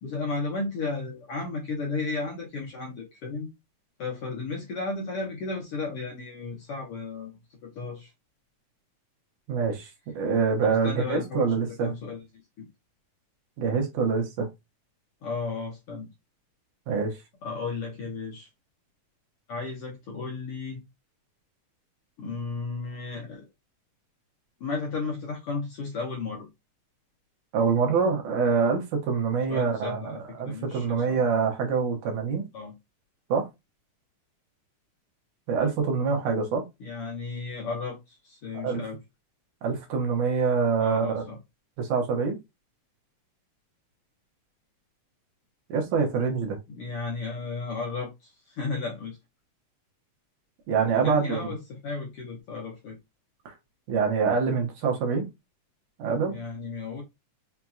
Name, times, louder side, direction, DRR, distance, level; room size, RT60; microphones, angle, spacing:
voice 1, 0.0-3.5 4.0-7.4 7.7-8.1 10.6-11.5 11.8-12.2 15.2-16.1 17.4-18.5 19.5-20.8 22.2-23.4 24.6-26.5 29.5-31.2 32.5-32.7 36.8-39.0 40.8-41.4 46.7-49.2 50.8-53.0 56.3-57.0, left 4 dB, 60° left, 1.6 m, -34 dB
voice 2, 9.5-9.9 10.2-11.9 13.6-14.5 16.9-17.2 27.5-32.5 33.3-33.5 35.5-36.6 38.5-38.8 39.6-41.2 41.8-42.4 45.7-46.6 50.7-51.5 53.5-53.6 53.9-55.3 56.0-56.4, right 5 dB, 75° right, 2.5 m, -25 dB
5.8 x 2.9 x 2.3 m
omnidirectional pair, 3.6 m